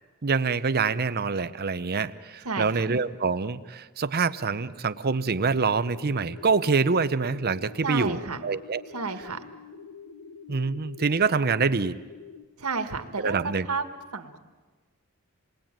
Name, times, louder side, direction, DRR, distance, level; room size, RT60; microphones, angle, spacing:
voice 1, 0.2-8.8 10.5-12.0 13.2-13.7, right 4 dB, 45° right, 13 dB, 0.8 m, -25 dB
voice 2, 2.4-2.8 7.8-8.4 8.9-9.4 12.6-13.9 14.1-14.4, right 4 dB, 90° right, 8 dB, 1.7 m, -31 dB
sound 1, 5.9-12.4, left 5 dB, 75° left, 1.4 m, -46 dB
27.5 x 21.0 x 9.0 m, 1.4 s
head